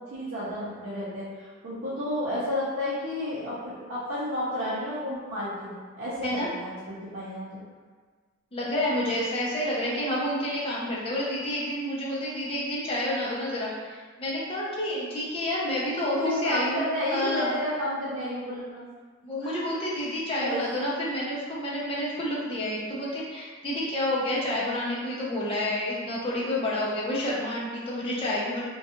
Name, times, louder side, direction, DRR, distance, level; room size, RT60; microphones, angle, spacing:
voice 1, 0.1-7.6 16.2-18.8 19.4-19.5 20.4-20.9, left 1 dB, 60° right, -11 dB, 0.6 m, -31 dB
voice 2, 8.5-16.8 17.1-17.5 19.2-28.6, left 1 dB, 25° left, -6 dB, 0.5 m, -29 dB
2.3 x 2.2 x 2.8 m, 1.5 s
head